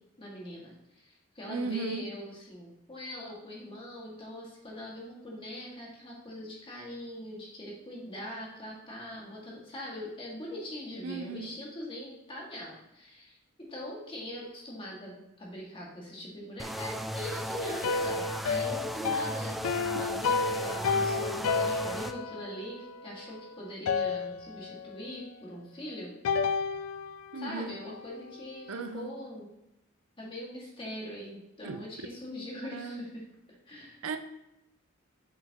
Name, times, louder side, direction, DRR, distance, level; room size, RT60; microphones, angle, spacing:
voice 1, 0.2-26.5 27.4-29.5 30.2-33.2 33.7-34.0, left 1 dB, 25° left, -4 dB, 2.0 m, -42 dB
voice 2, 1.5-2.1 11.0-11.6 19.9-20.0 27.3-27.7 28.7-29.1 31.6-31.8 32.7-33.0 34.0-34.2, right 4 dB, 75° right, 8 dB, 0.5 m, -36 dB
sound 1, 16.6-22.1, equal, ahead, 0.3 m, -36 dB
sound 2, 17.6-23.5 23.9-25.0 26.3-28.5, left 5 dB, 80° left, 0.4 m, -32 dB
7.6 x 5.6 x 3.0 m, 0.87 s
head